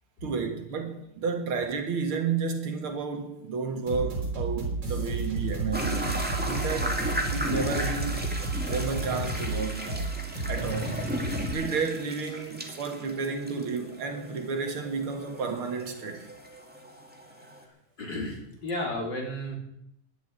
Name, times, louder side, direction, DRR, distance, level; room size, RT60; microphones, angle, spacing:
voice 1, 0.2-7.0 7.3-8.2 8.6-9.9 10.5-11.0 11.5-16.3, right 5 dB, 75° right, 2.7 m, -31 dB
sound 1, 3.9-11.5, right 3 dB, 55° right, 4.5 m, -31 dB
sound 2, 5.7-17.6, equal, 5° right, 2.1 m, -36 dB
voice 2, 10.0-11.7 17.4-17.5 18.0-19.6, left 1 dB, 50° left, 4.3 m, -36 dB
11.5 x 10.5 x 8.9 m
omnidirectional pair, 2.4 m